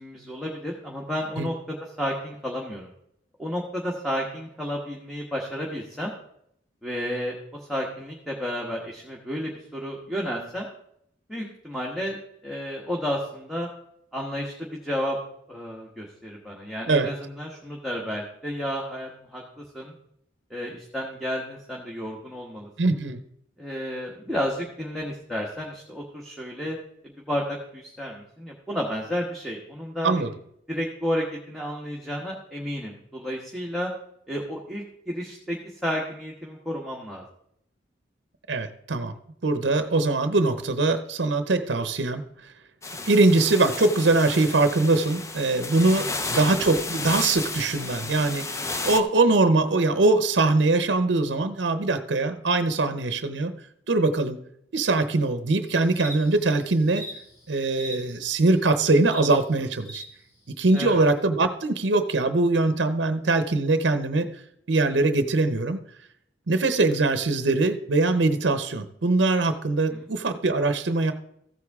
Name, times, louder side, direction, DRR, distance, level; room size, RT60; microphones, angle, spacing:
voice 1, 0.0-2.9 3.4-6.1 6.8-10.7 11.3-13.7 14.1-15.2 15.5-19.4 19.7-19.9 20.5-22.9 23.6-26.8 27.0-30.2 30.7-33.9 34.3-35.6 35.8-37.2 46.0-46.1 60.7-61.0 69.9-70.1, equal, ahead, -3 dB, 1.2 m, -32 dB
voice 2, 22.8-23.2 30.0-30.3 38.5-39.1 39.4-42.2 43.1-48.6 48.8-53.5 53.9-54.4 54.7-57.1 57.5-60.0 60.5-64.3 64.7-65.8 66.5-71.1, right 3 dB, 70° right, 9 dB, 0.7 m, -22 dB
sound 1, 42.8-49.0, left 3 dB, 15° left, 0.5 m, -32 dB
sound 2, 55.7-60.0 60.7-60.9, equal, 35° left, 2.2 m, -42 dB
14.5 x 8.0 x 3.6 m, 0.74 s
head